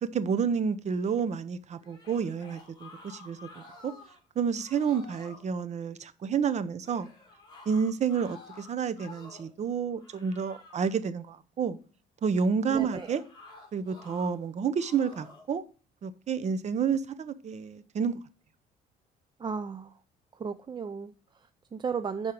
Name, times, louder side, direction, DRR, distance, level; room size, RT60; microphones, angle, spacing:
voice 1, 0.0-3.9 4.4-7.1 7.7-11.8 12.2-13.2 13.7-15.6 16.0-18.2, right 6 dB, 40° right, 0.9 m, -30 dB
sound 1, 1.8-4.2 4.5-5.5 6.8-9.6 10.0-10.9 12.8-14.3 14.8-15.5, left 3 dB, 25° left, 3.4 m, -51 dB
voice 2, 12.7-13.1 19.4-20.0 20.3-22.3, right 6 dB, 25° right, 0.5 m, -35 dB
10.5 x 4.6 x 4.9 m
cardioid pair, 110°, 17 cm